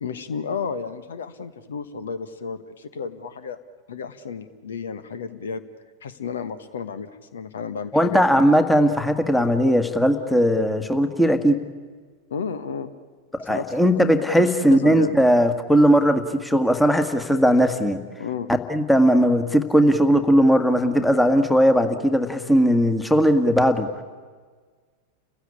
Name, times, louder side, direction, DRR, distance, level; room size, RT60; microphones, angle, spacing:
voice 1, 0.0-3.6 3.9-5.6 6.0-8.2 12.3-12.9 13.4-13.6 13.9-14.0 14.4-15.2 18.2-18.5, left 5 dB, 65° left, 12 dB, 1.3 m, -32 dB
voice 2, 7.9-11.6 13.3-18.0 18.7-23.9, equal, 5° left, 8 dB, 1.8 m, -18 dB
30.0 x 16.0 x 9.8 m, 1.5 s
figure-of-eight pair, 90°, 0 cm